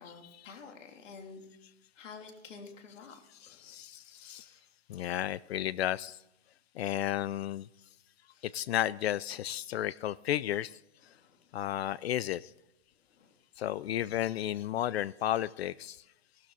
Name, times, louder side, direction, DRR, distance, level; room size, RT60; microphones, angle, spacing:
voice 1, 0.0-1.4 2.0-3.8 4.1-4.7 8.3-8.5 11.1-11.4 13.1-13.4, left 5 dB, 85° left, 4 dB, 3.3 m, -50 dB
voice 2, 3.4-4.5 4.9-6.2 6.8-7.7 8.4-10.7 11.5-12.5 13.6-16.0, left 12 dB, 60° left, 20 dB, 0.5 m, -33 dB
16.0 x 12.5 x 4.1 m, 0.90 s
supercardioid pair, 170°, 36 cm